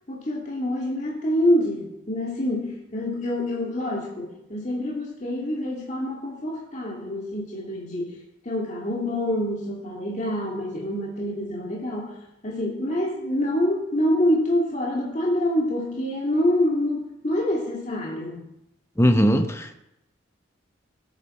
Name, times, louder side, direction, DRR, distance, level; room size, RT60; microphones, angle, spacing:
voice 1, 0.1-8.2 8.4-12.2 12.4-18.5, left 1 dB, 35° left, -2 dB, 2.0 m, -26 dB
voice 2, 19.0-19.7, equal, 15° left, 6 dB, 0.9 m, -19 dB
16.0 x 9.1 x 4.3 m, 0.85 s
head